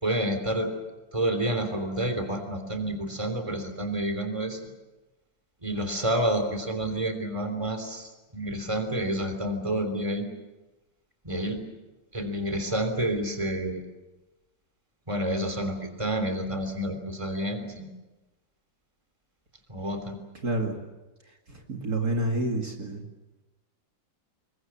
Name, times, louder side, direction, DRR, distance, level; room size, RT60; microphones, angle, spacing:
voice 1, 0.0-0.7 1.1-4.6 5.6-10.3 11.2-11.6 12.1-13.8 15.1-17.9 19.7-20.2, right 1 dB, 15° right, 7 dB, 3.4 m, -29 dB
voice 2, 20.4-20.8 21.5-23.0, right 1 dB, 55° right, 2 dB, 2.7 m, -28 dB
27.5 x 22.5 x 7.6 m, 1.1 s
omnidirectional pair, 2.0 m